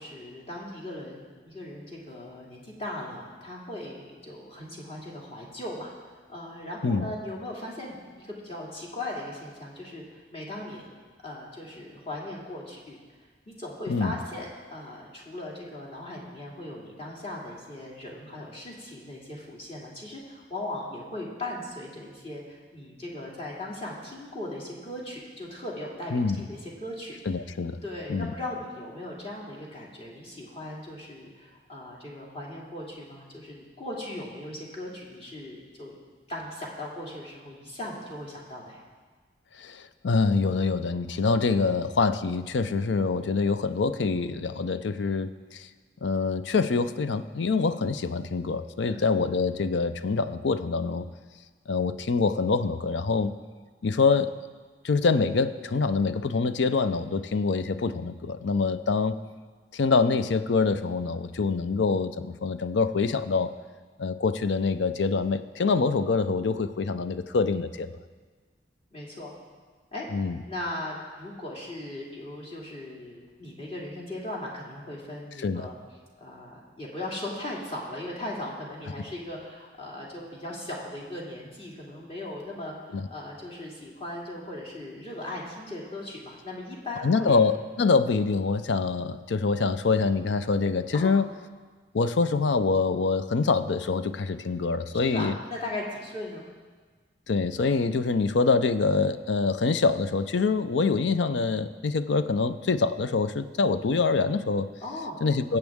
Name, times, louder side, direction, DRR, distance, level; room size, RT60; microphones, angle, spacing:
voice 1, 0.0-5.9 6.3-10.9 11.2-13.0 13.5-27.2 27.8-35.9 36.3-38.8 48.8-49.0 68.9-69.3 69.9-70.1 70.5-75.8 76.2-87.4 90.9-91.1 95.1-96.4 104.8-105.3, left 1 dB, 35° left, -3 dB, 2.5 m, -38 dB
voice 2, 26.1-26.4 27.3-27.8 28.1-28.3 39.6-45.6 46.0-51.1 51.7-53.3 53.8-54.3 54.8-59.2 59.7-63.5 64.0-67.9 70.1-70.4 75.4-75.7 82.9-83.1 87.0-91.2 91.9-95.3 97.3-104.7 105.2-105.6, left 4 dB, 80° left, 11 dB, 0.5 m, -25 dB
21.0 x 8.0 x 3.6 m, 1.5 s
head